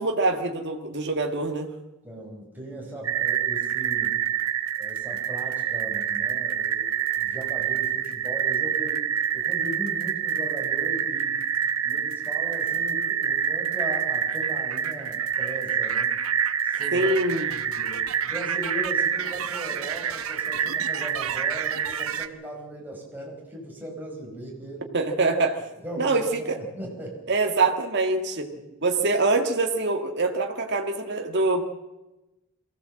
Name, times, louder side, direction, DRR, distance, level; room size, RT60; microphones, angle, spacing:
voice 1, 0.0-1.7 16.9-17.5 24.9-25.6 26.0-26.6 27.3-28.5 28.8-31.6, right 3 dB, 55° right, 3 dB, 1.8 m, -24 dB
voice 2, 2.0-4.2 4.8-9.0 9.3-11.4 11.8-16.2 16.6-17.1 17.5-24.9 25.8-27.2 28.5-28.6, right 1 dB, 10° right, -2 dB, 5.2 m, -38 dB
sound 1, 3.0-22.3, right 9 dB, 80° right, 1.1 m, -27 dB
23.0 x 16.0 x 7.7 m, 1.0 s
head